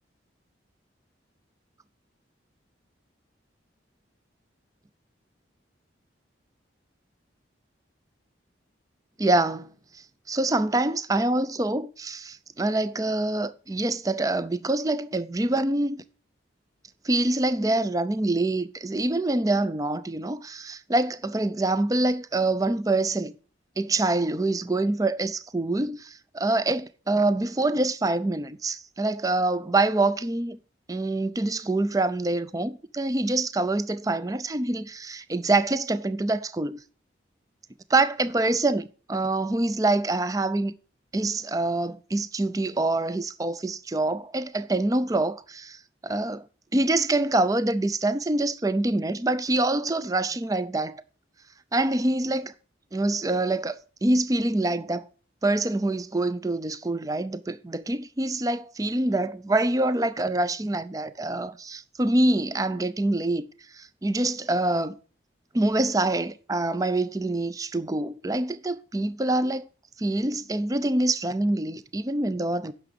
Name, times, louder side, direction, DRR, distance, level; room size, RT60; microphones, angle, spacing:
voice 1, 9.2-16.0 17.0-23.3 23.8-30.6 30.9-36.8 37.9-40.7 41.1-45.8 46.0-46.4 46.7-51.0 51.7-52.5 52.9-55.1 55.4-63.5 63.7-64.9 65.5-69.7 70.0-72.7, right 2 dB, 20° right, 0.4 m, -25 dB
9.8 x 6.0 x 6.7 m
head